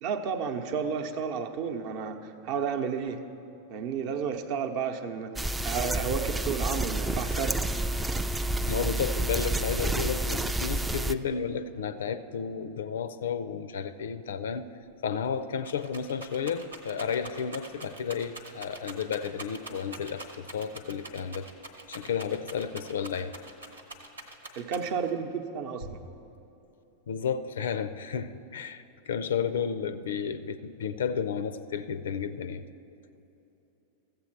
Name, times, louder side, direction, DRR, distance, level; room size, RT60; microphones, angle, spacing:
voice 1, 0.0-3.2 3.7-7.7 24.6-26.0, right 6 dB, 45° right, 6 dB, 0.7 m, -32 dB
sound 1, 5.4-11.1, right 1 dB, 10° right, 0.3 m, -29 dB
voice 2, 8.7-14.7 15.0-21.5 21.9-23.3 27.1-32.6, left 7 dB, 65° left, 13 dB, 0.4 m, -32 dB
Rattle, 14.9-15.0 15.2-25.2 25.8-26.4, right 2 dB, 75° right, 1.1 m, -45 dB
14.5 x 7.8 x 4.5 m, 3.0 s
figure-of-eight pair, 90°, 0 cm